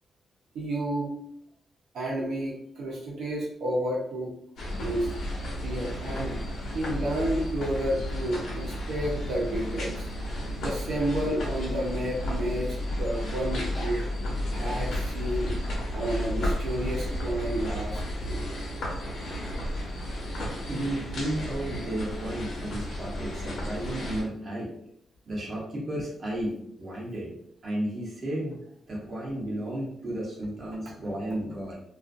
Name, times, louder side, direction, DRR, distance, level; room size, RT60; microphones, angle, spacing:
voice 1, 0.5-1.1 1.9-4.3 4.8-5.1 5.6-6.3 6.7-10.1 10.6-14.0 14.5-15.5 15.9-18.4, right 1 dB, 75° right, -4 dB, 0.7 m, -31 dB
sound 1, 4.6-24.2, left 1 dB, 70° left, 0.9 m, -32 dB
voice 2, 20.7-24.7 25.3-27.3 27.6-28.6 28.9-31.8, right 1 dB, 35° right, -5 dB, 0.8 m, -33 dB
2.5 x 2.4 x 2.4 m, 0.70 s
wide cardioid pair, 175°, 0 cm